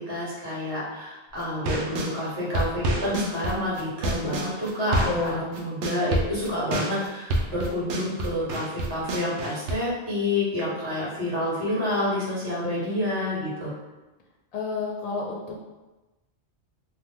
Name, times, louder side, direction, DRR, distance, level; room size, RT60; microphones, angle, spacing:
voice 1, 0.0-13.7, left 1 dB, 65° right, -7 dB, 1.4 m, -28 dB
sound 1, 1.4-2.1 2.5-5.3 5.5-9.7, right 1 dB, 90° right, 0.9 m, -28 dB
voice 2, 5.0-5.5 12.6-12.8 14.5-15.6, left 3 dB, 45° left, -1 dB, 0.5 m, -30 dB
2.9 x 2.1 x 3.4 m, 1.1 s
omnidirectional pair, 1.1 m